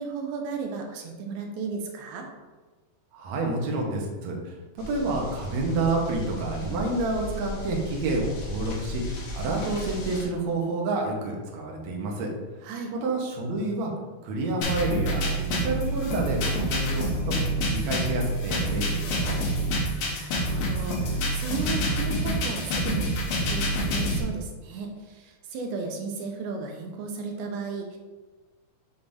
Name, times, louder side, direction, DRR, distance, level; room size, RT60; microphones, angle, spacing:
voice 1, 0.0-2.3 12.6-12.9 20.1-28.0, right 4 dB, 85° right, 2 dB, 2.5 m, -35 dB
voice 2, 3.1-12.3 12.6-13.9 14.2-17.3 17.7-19.4, right 2 dB, 65° right, -1 dB, 1.8 m, -29 dB
sound 1, 4.8-10.2, equal, 55° left, 2.0 m, -36 dB
sound 2, 14.6-24.2, equal, 75° left, 3.0 m, -27 dB
6.9 x 5.3 x 2.7 m, 1.3 s
omnidirectional pair, 4.4 m